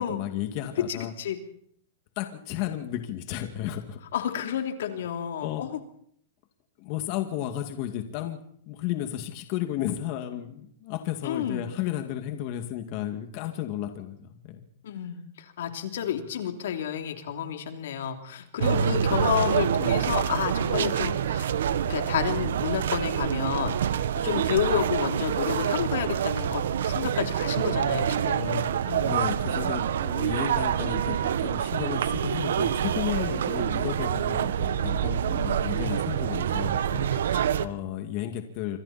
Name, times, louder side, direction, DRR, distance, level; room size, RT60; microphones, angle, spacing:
voice 1, 0.0-1.1 2.2-4.0 5.4-5.7 6.8-8.4 8.7-14.7 16.0-16.1 18.6-19.0 29.0-38.8, left 12 dB, 45° left, 6 dB, 2.2 m, -33 dB
voice 2, 0.9-1.4 4.1-5.7 11.2-11.6 14.8-15.2 15.6-21.5 21.9-29.2 37.1-37.7, left 9 dB, 75° left, 5 dB, 3.2 m, -30 dB
sound 1, 18.6-37.7, right 9 dB, 85° right, 1.3 m, -26 dB
26.5 x 26.5 x 4.4 m, 0.67 s
supercardioid pair, 155°, 0 cm